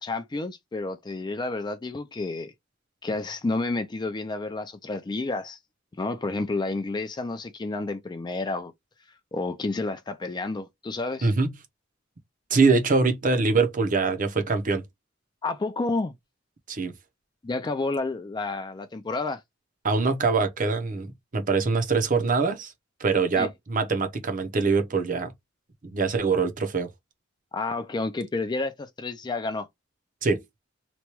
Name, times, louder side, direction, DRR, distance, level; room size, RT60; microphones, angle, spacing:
voice 1, 0.0-2.5 3.0-5.6 6.0-8.7 9.3-11.3 15.4-16.1 17.4-19.4 23.4-23.5 27.5-29.7, left 3 dB, 20° left, 0.4 m, -30 dB
voice 2, 11.2-11.5 12.5-14.8 16.7-16.9 19.8-22.7 23.0-25.3 25.8-26.9 30.2-30.4, right 4 dB, 40° right, 0.7 m, -23 dB
3.0 x 2.2 x 2.9 m
head